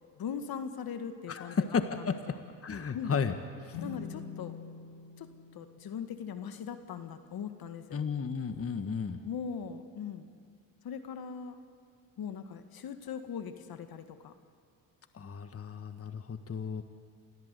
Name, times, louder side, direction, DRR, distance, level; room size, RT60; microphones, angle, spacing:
voice 1, 0.1-2.4 2.9-3.1 3.8-4.6 5.2-8.0 9.2-10.3 10.8-11.6 12.2-14.3, left 7 dB, 55° left, 9 dB, 1.8 m, -40 dB
voice 2, 1.3-2.1 2.6-3.3 3.6-3.8 7.9-9.2 15.1-16.8, left 6 dB, 30° left, 9 dB, 1.5 m, -33 dB
sound 1, 3.7-7.3, left 6 dB, 70° left, 3.3 m, -46 dB
27.5 x 15.5 x 8.3 m, 2.2 s
supercardioid pair, 65°, 43 cm